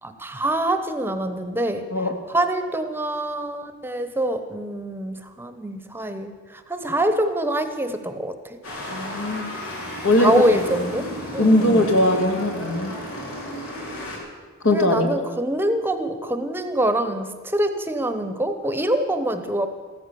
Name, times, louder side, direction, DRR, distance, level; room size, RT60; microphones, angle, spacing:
voice 1, 0.0-1.9 2.3-8.6 10.2-11.9 14.7-19.7, right 1 dB, 10° right, 8 dB, 0.9 m, -25 dB
sound 1, 8.6-14.2, equal, 90° left, 4.1 m, -33 dB
voice 2, 8.9-9.5 10.0-10.6 11.4-12.9 14.6-15.1, left 1 dB, 70° left, 4 dB, 2.1 m, -20 dB
15.0 x 14.0 x 6.9 m, 1.5 s
head